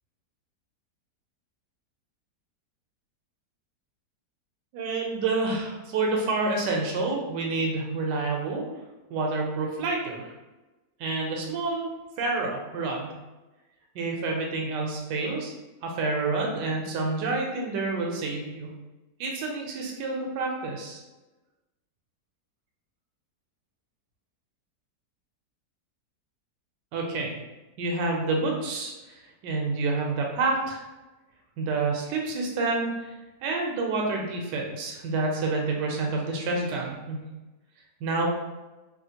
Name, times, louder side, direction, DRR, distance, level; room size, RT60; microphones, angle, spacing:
voice 1, 4.7-8.6 9.1-10.3 11.0-11.9 12.2-13.2 13.9-15.5 15.8-18.7 19.2-21.0 26.9-27.4 27.8-30.8 31.6-33.1 33.4-37.2 38.0-38.3, right 3 dB, 85° right, 0 dB, 1.2 m, -28 dB
3.0 x 2.4 x 2.7 m, 1.1 s
omnidirectional pair, 1.8 m